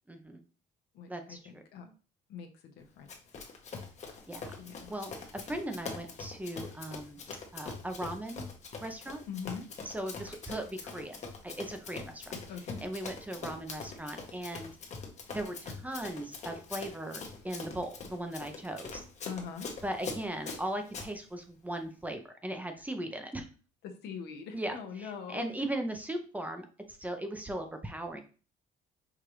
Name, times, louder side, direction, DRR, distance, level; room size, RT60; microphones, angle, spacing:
voice 1, 0.1-0.4 1.1-1.6 4.3-4.6 4.9-7.2 7.5-8.4 8.8-9.2 9.8-11.2 11.4-12.3 12.8-14.7 15.3-19.0 19.8-23.5 24.5-28.2, right 1 dB, 10° right, 6 dB, 0.6 m, -38 dB
voice 2, 0.9-1.9 2.3-3.1 4.6-4.9 9.3-9.6 12.5-12.8 19.2-19.7 23.8-25.5, left 6 dB, 80° left, 5 dB, 0.8 m, -42 dB
Run, 3.1-21.1, left 4 dB, 45° left, 0.9 m, -43 dB
4.8 x 2.5 x 3.0 m, 0.37 s
cardioid pair, 110°, 17 cm